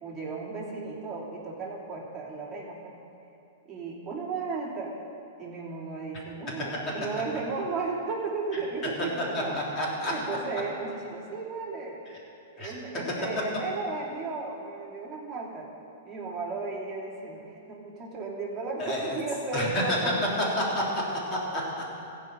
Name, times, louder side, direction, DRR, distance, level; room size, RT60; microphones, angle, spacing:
voice 1, 0.0-3.0 3.6-5.0 5.4-9.8 10.1-12.0 12.5-15.7 16.0-20.2, right 3 dB, 15° right, -6 dB, 3.1 m, -34 dB
voice 2, 9.3-10.1 12.6-12.7 18.8-19.2 19.5-20.0 20.6-21.0 21.3-21.8, left 1 dB, 30° left, -4 dB, 3.4 m, -29 dB
15.5 x 5.4 x 8.8 m, 2.9 s
hypercardioid pair, 135°, 0 cm